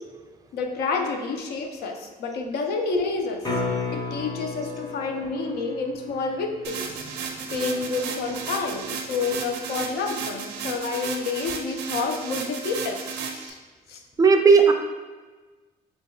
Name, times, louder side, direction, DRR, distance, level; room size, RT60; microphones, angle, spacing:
voice 1, 0.5-3.6 3.9-6.9 7.5-13.6 13.9-14.0, left 4 dB, 70° left, 4 dB, 0.6 m, -29 dB
sound 1, 3.4-9.5 14.1-14.2, left 3 dB, 25° left, 0.9 m, -35 dB
sound 2, 6.6-13.5, right 6 dB, 80° right, 0.6 m, -34 dB
voice 2, 7.2-7.6 14.2-14.7, right 5 dB, 20° right, 4 dB, 0.4 m, -17 dB
6.7 x 2.3 x 2.3 m, 1.3 s
cardioid pair, 110°, 17 cm